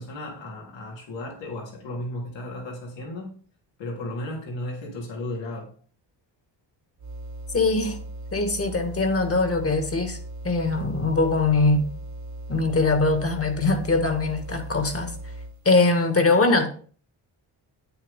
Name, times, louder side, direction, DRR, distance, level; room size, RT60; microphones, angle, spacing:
voice 1, 0.0-3.4 3.8-5.8, left 1 dB, 80° left, 3.9 m, -34 dB
sound 1, 7.0-15.7, right 1 dB, 40° right, 1.3 m, -38 dB
voice 2, 7.5-8.0 8.3-10.2 10.4-11.9 12.5-15.2 15.7-16.7, left 3 dB, 30° left, 2.1 m, -22 dB
9.2 x 9.1 x 3.8 m
cardioid pair, 95°, 44 cm